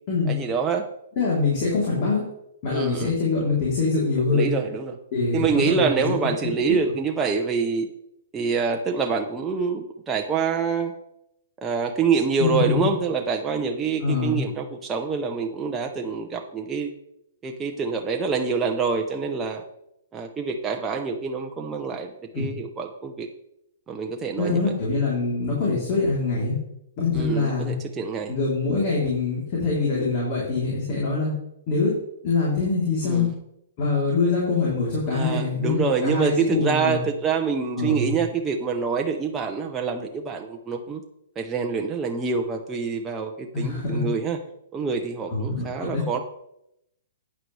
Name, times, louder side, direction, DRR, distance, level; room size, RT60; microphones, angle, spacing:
voice 1, 0.3-0.9 2.7-3.1 4.3-5.0 5.3-7.9 8.3-10.9 11.6-16.9 17.4-19.6 20.1-23.3 23.9-24.7 27.1-28.3 33.0-33.3 35.1-41.0 41.4-44.4 44.7-46.2, right 5 dB, 10° right, 2 dB, 0.7 m, -26 dB
voice 2, 1.2-2.2 2.6-4.5 5.1-6.1 12.4-12.9 14.0-14.4 22.3-22.5 24.4-26.6 27.0-27.7 28.3-31.4 31.7-32.0 32.2-33.3 33.8-37.0 37.8-38.1 43.5-44.1 45.3-46.0, left 4 dB, 35° left, -6 dB, 3.4 m, -24 dB
11.0 x 9.2 x 3.3 m, 0.80 s
hypercardioid pair, 165°, 0 cm